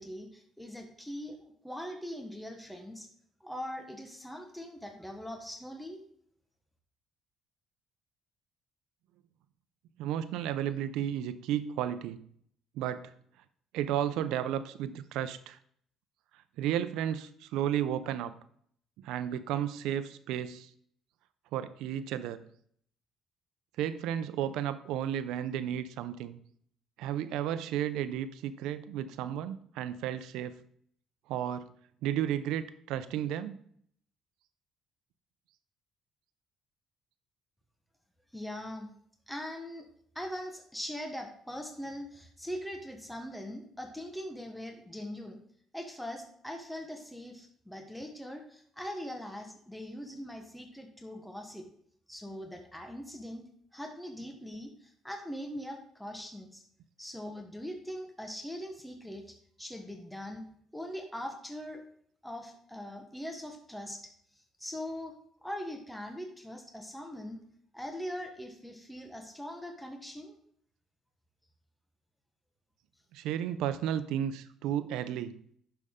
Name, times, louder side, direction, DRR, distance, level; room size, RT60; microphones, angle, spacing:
voice 1, 0.0-3.1 3.4-6.0 38.3-38.9 39.3-39.9 40.1-45.4 45.7-51.6 52.1-56.6 57.0-60.4 60.7-61.8 62.2-64.1 64.6-67.4 67.7-70.4, equal, ahead, 3 dB, 1.2 m, -41 dB
voice 2, 10.0-12.2 12.7-13.1 13.7-15.6 16.6-18.3 19.0-20.7 21.5-22.4 23.8-26.4 27.0-30.5 31.3-31.7 32.0-33.6 73.1-75.4, right 10 dB, 90° right, 12 dB, 0.6 m, -33 dB
10.5 x 6.7 x 3.7 m, 0.63 s
cardioid pair, 130°, 0 cm